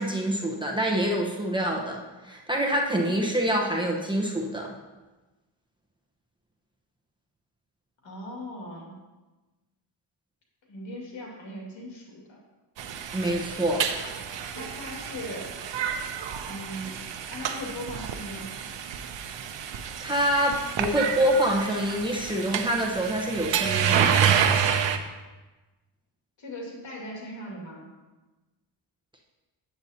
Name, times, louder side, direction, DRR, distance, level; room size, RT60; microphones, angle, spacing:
voice 1, 0.0-4.7 13.1-13.8 20.0-24.2, right 1 dB, 10° right, -1 dB, 1.1 m, -26 dB
voice 2, 8.0-8.9 10.7-12.4 14.5-15.5 16.5-17.0 17.3-18.5 26.4-27.9, equal, 70° left, -2 dB, 2.4 m, -39 dB
sound 1, 12.8-25.0, right 8 dB, 65° right, 0.7 m, -29 dB
8.4 x 7.8 x 2.9 m, 1.2 s
cardioid pair, 75°, 47 cm